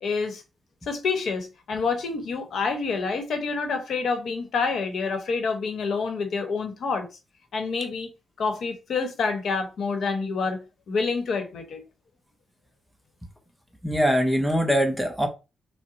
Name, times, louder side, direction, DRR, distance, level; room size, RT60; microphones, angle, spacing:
voice 1, 0.0-0.4 0.9-7.1 7.5-8.1 8.4-10.6 10.9-11.8, left 4 dB, 65° left, 1.1 m, -27 dB
voice 2, 13.8-15.3, equal, ahead, 0.6 m, -22 dB
5.7 x 2.2 x 4.0 m
wide cardioid pair, 175°, 0 cm